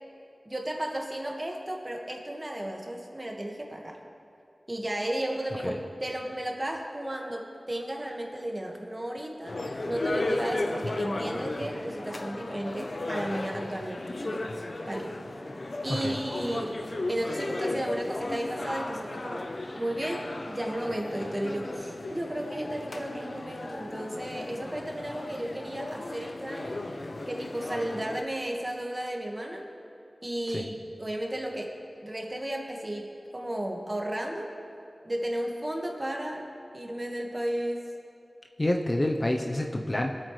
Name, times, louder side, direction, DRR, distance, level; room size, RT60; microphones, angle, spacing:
voice 1, 0.4-4.0 4.7-14.5 14.9-15.2 15.8-16.8 17.1-19.5 19.7-26.8 27.3-29.7 30.2-30.7 31.0-31.7 32.0-34.5 35.0-36.4 36.7-37.9, right 1 dB, 25° right, 0 dB, 1.7 m, -34 dB
sound 1, 9.4-28.2, left 2 dB, 60° left, 0.8 m, -35 dB
voice 2, 38.6-40.2, left 1 dB, 30° left, 2 dB, 0.8 m, -28 dB
22.5 x 8.6 x 3.3 m, 2.6 s
wide cardioid pair, 75°, 0 cm